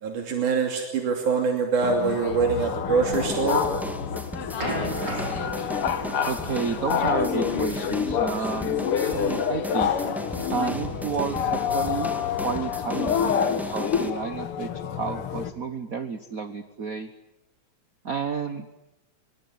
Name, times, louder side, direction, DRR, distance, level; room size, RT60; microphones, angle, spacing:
voice 1, 0.0-3.6, right 5 dB, 85° right, 3 dB, 4.3 m, -24 dB
sound 1, 1.8-15.5, left 7 dB, 55° left, 2.1 m, -28 dB
sound 2, 3.1-14.1, equal, ahead, 2.0 m, -37 dB
sound 3, 3.8-8.8, right 1 dB, 35° right, 4.8 m, -37 dB
voice 2, 6.2-9.9 10.5-12.1 12.4-17.1 18.0-18.9, right 5 dB, 55° right, 10 dB, 0.9 m, -31 dB
25.0 x 24.0 x 9.6 m, 0.95 s
omnidirectional pair, 3.4 m